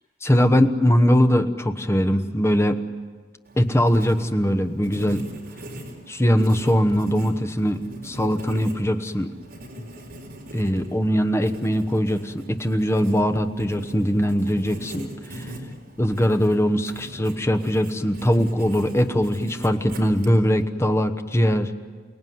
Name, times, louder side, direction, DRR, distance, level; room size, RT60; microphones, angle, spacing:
voice 1, 0.2-2.8 3.6-5.3 6.1-9.3 10.5-15.1 15.3-15.5 16.0-21.7, equal, 15° left, 8 dB, 1.1 m, -21 dB
Writing, 3.5-20.6, equal, 60° right, 4.4 m, -40 dB
29.0 x 18.0 x 9.4 m, 1.5 s
head